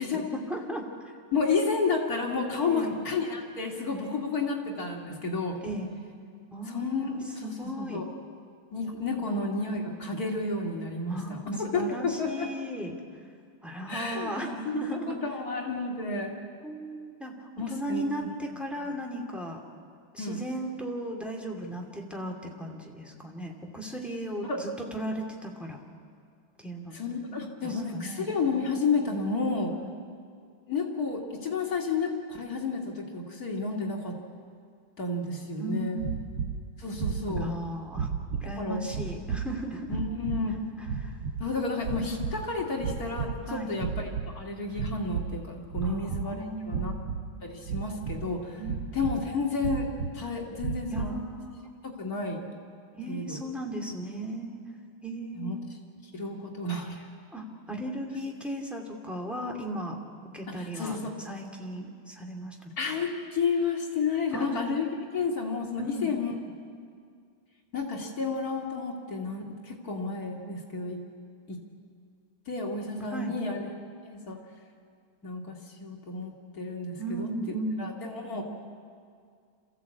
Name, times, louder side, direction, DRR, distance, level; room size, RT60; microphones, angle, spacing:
voice 1, 0.0-1.1 2.6-3.0 5.6-5.9 6.5-8.0 9.2-9.3 11.1-13.0 13.6-15.2 16.6-19.6 20.1-25.8 26.6-27.0 27.3-28.3 29.8-30.0 35.6-36.3 37.3-38.1 38.4-39.9 41.0-41.1 43.5-43.7 45.8-47.2 48.6-48.8 50.9-51.6 52.9-54.6 55.0-55.6 57.3-60.0 60.3-62.7 64.3-64.6 65.8-66.1 73.1-73.3 77.0-77.9, right 1 dB, ahead, 0 dB, 2.4 m, -36 dB
voice 2, 1.3-5.6 6.7-8.1 8.7-12.5 13.9-14.3 14.6-16.3 17.6-18.0 18.8-18.9 20.2-20.4 24.5-24.6 26.9-29.8 30.7-34.2 35.0-36.0 36.8-37.5 38.6-38.9 39.9-40.6 41.4-46.9 47.4-48.6 48.9-49.9 50.1-51.1 51.8-52.5 53.1-53.4 55.3-55.6 56.1-57.0 60.5-61.1 62.8-64.8 65.1-66.4 67.7-71.0 71.5-71.6 72.5-73.7 74.0-74.4 75.2-77.3 77.8-78.4, left 4 dB, 45° left, 0 dB, 2.9 m, -31 dB
sound 1, 36.0-36.6 36.9-37.6 37.9-38.5 38.9-39.5 39.9-40.4 40.8-41.5 41.8-42.5 42.8-43.4 43.7-44.3 44.7-45.4 45.7-46.3 46.7-47.2 47.7-48.3 48.6-49.2 49.6-50.1 50.6-51.2, right 6 dB, 85° right, 2.3 m, -33 dB
27.5 x 15.0 x 8.5 m, 2.2 s
omnidirectional pair, 2.3 m